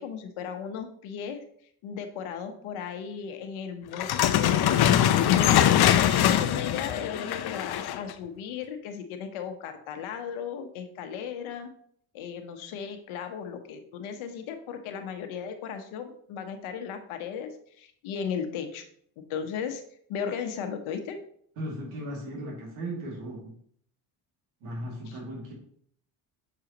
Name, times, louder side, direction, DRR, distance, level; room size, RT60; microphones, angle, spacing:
voice 1, 0.0-1.4 1.8-4.8 5.1-11.7 12.1-18.8 19.2-19.8 20.1-21.2 25.1-25.2, left 7 dB, 75° left, 6 dB, 1.1 m, -36 dB
sound 1, 3.9-8.1, left 11 dB, 50° left, 0.7 m, -22 dB
voice 2, 21.6-23.5 24.6-25.5, right 1 dB, 80° right, -3 dB, 2.4 m, -36 dB
6.7 x 6.0 x 2.9 m, 0.63 s
supercardioid pair, 70°, 49 cm